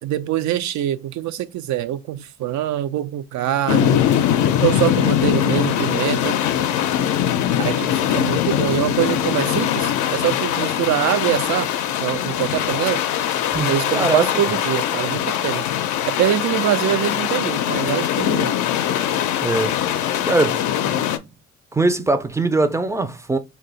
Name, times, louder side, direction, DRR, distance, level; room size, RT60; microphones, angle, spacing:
voice 1, 0.0-4.1 4.6-6.4 7.6-11.7 12.0-13.0 13.7-15.7 16.0-18.5, right 12 dB, 70° right, 0.4 m, -24 dB
sound 1, 3.7-21.2, left 10 dB, 80° left, 0.5 m, -21 dB
voice 2, 13.5-14.4 19.4-19.7 20.2-20.6 20.9-21.0 21.7-23.4, right 2 dB, 10° right, 0.4 m, -21 dB
2.7 x 2.2 x 3.8 m
cardioid pair, 90°, 30 cm